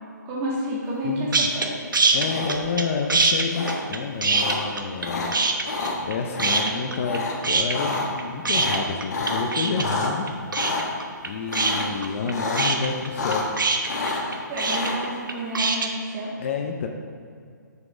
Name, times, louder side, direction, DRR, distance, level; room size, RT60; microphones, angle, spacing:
voice 1, 0.2-1.7 14.5-16.3, right 1 dB, 25° right, -4 dB, 1.7 m, -30 dB
voice 2, 1.0-1.5 2.1-5.3 5.9-10.3 10.7-10.8 11.2-13.5 16.4-16.9, left 5 dB, 40° left, 4 dB, 0.5 m, -29 dB
sound 1, 1.3-1.7 1.9-2.8 3.1-5.1 5.3-6.1 6.4-7.2 7.4-15.9, right 4 dB, 85° right, 0.8 m, -23 dB
sound 2, 2.2-2.8 3.5-3.8 4.3-4.6 5.0-5.3 5.6-5.9 6.3-6.6 7.1-7.3 7.6-8.1 8.5-10.1 10.5-10.8 11.5-12.0 12.3-12.7 13.0-13.6 13.9-15.0, left 3 dB, 55° left, 1.4 m, -28 dB
6.6 x 5.0 x 4.8 m, 2.2 s
hypercardioid pair, 150°, 10 cm